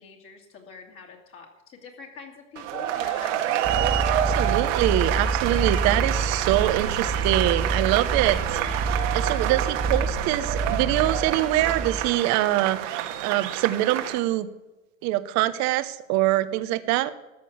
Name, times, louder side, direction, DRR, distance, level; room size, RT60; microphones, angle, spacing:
voice 1, 0.0-4.0, left 5 dB, 35° left, 0 dB, 2.6 m, -45 dB
sound 1, 2.6-14.2, right 12 dB, 65° right, 1.7 m, -28 dB
sound 2, 3.6-12.1, right 3 dB, 20° right, 1.7 m, -28 dB
voice 2, 4.1-8.9 9.1-14.5 15.0-17.1, right 15 dB, 45° right, 13 dB, 1.0 m, -24 dB
13.5 x 9.0 x 7.2 m, 1.1 s
supercardioid pair, 130°, 40 cm